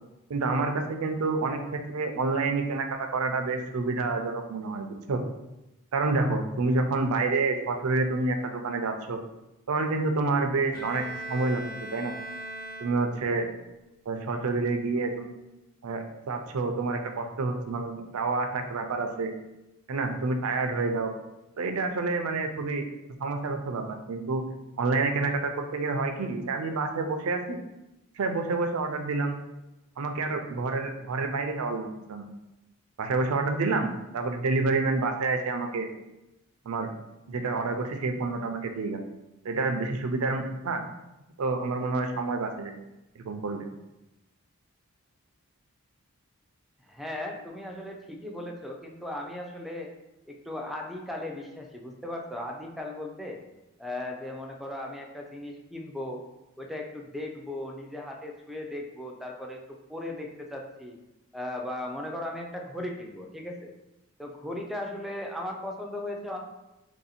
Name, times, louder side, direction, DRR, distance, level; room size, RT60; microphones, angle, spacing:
voice 1, 0.3-5.2 5.9-9.2 9.7-12.1 12.8-13.5 14.1-15.3 15.8-19.3 19.9-21.1 21.6-22.8 23.2-24.5 24.8-27.6 28.2-29.4 30.0-32.3 33.0-35.9 36.7-36.9 37.3-39.0 39.4-40.8 41.4-42.7 43.2-43.7, right 3 dB, 75° right, 5 dB, 0.5 m, -28 dB
Bowed string instrument, 10.7-13.4, right 2 dB, 45° left, 0.8 m, -39 dB
voice 2, 46.8-49.9 50.3-53.4 53.8-56.2 56.6-61.0 61.3-63.7 64.2-66.4, left 1 dB, ahead, 1 dB, 0.4 m, -37 dB
3.0 x 2.7 x 4.1 m, 0.97 s
head